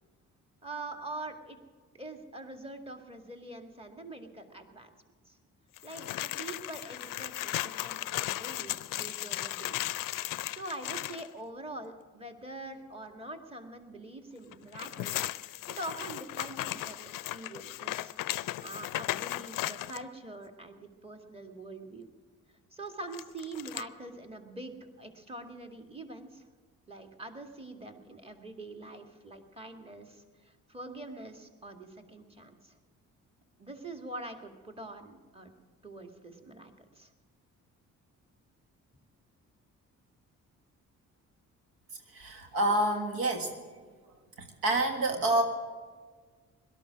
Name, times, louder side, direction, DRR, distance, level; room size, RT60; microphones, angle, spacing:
voice 1, 0.6-1.6 1.9-4.9 5.3-5.4 5.8-10.0 10.5-15.3 15.7-17.0 17.3-18.1 18.6-22.1 22.7-26.4 26.9-32.7 33.6-35.5 35.8-37.1, right 2 dB, 15° right, 5 dB, 2.0 m, -44 dB
sound 1, 5.8-11.3 14.5-20.0 23.1-23.8, left 15 dB, 65° left, 0.5 m, -36 dB
voice 2, 42.1-43.6 44.4-45.4, right 2 dB, 85° right, 4 dB, 1.7 m, -28 dB
17.5 x 12.5 x 6.2 m, 1.5 s
supercardioid pair, 60°, 35 cm